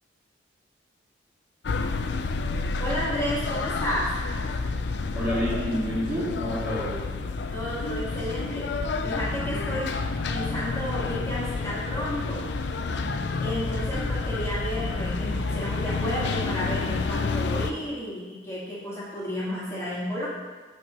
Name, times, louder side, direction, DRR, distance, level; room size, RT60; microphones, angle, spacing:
sound 1, 1.6-17.7, left 3 dB, 60° left, 0.4 m, -29 dB
voice 1, 2.8-4.1 7.5-8.7 9.0-9.9 10.3-12.5 13.4-20.3, equal, 15° left, -8 dB, 2.0 m, -32 dB
voice 2, 5.1-6.9 9.6-9.9, equal, 5° right, -15 dB, 1.9 m, -29 dB
6.0 x 4.4 x 6.4 m, 1.3 s
head